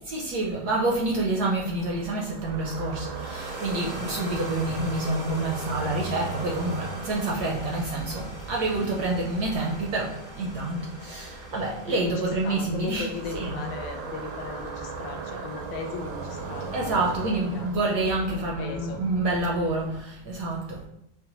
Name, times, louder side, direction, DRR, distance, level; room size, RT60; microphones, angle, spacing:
voice 1, 0.0-13.6 16.7-20.9, right 2 dB, 70° right, 0.9 m, -28 dB
sound 1, 1.5-20.0, right 4 dB, 90° right, 1.5 m, -38 dB
sound 2, 3.0-17.4, equal, 20° right, 0.6 m, -45 dB
voice 2, 12.2-17.7 18.3-19.0, left 5 dB, 75° left, 1.4 m, -38 dB
5.5 x 2.2 x 2.9 m
omnidirectional pair, 2.3 m